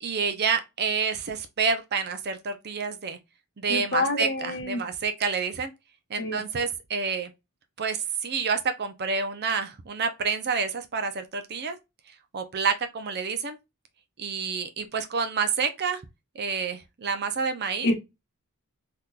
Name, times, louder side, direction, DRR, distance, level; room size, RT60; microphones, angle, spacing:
voice 1, 0.0-3.2 3.6-5.7 6.1-7.3 7.8-11.8 12.3-13.6 14.2-16.0 16.3-17.9, right 5 dB, 45° right, 0.6 m, -28 dB
voice 2, 3.7-4.8 6.2-6.4 17.8-17.9, left 2 dB, 50° left, 1.1 m, -27 dB
3.7 x 2.9 x 2.3 m
head